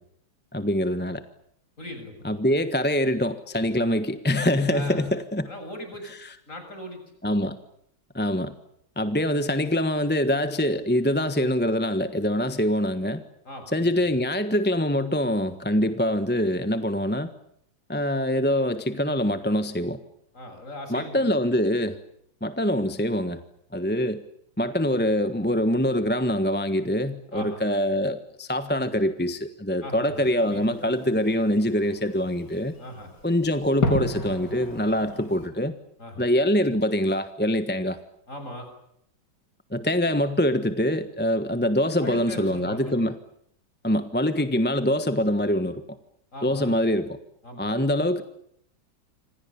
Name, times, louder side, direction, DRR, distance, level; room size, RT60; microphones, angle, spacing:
voice 1, 0.5-1.2 2.2-5.5 6.2-6.3 7.2-7.6 8.1-8.5 9.0-13.2 13.7-17.3 17.9-20.0 20.9-22.0 22.4-23.4 23.7-24.2 24.6-32.7 33.2-35.8 36.2-38.0 39.7-43.1 43.8-45.8 46.4-47.1 47.6-48.2, left 1 dB, 5° left, 10 dB, 1.1 m, -24 dB
voice 2, 1.8-2.4 4.7-5.0 5.5-6.1 6.5-7.0 13.4-14.2 20.3-21.4 27.3-27.6 29.8-30.9 32.8-33.1 36.0-36.2 38.3-38.7 42.0-43.0 46.3-46.7 47.4-47.8, left 1 dB, 40° left, 6 dB, 7.7 m, -39 dB
Fireworks, 30.1-35.5, left 2 dB, 55° left, 4.9 m, -34 dB
27.0 x 26.5 x 7.1 m, 0.73 s
omnidirectional pair, 2.2 m